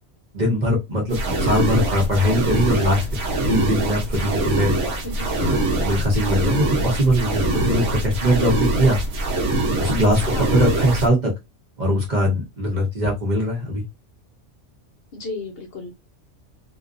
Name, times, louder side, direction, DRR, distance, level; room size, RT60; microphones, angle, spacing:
voice 1, 0.3-3.0 3.5-4.7 5.4-9.0 9.8-11.3 11.8-13.8, equal, 45° right, 0.8 m, -21 dB
sound 1, 1.1-11.1, right 2 dB, 80° right, 1.1 m, -23 dB
voice 2, 15.1-15.9, left 3 dB, 60° left, 0.8 m, -33 dB
2.5 x 2.2 x 2.4 m
omnidirectional pair, 1.2 m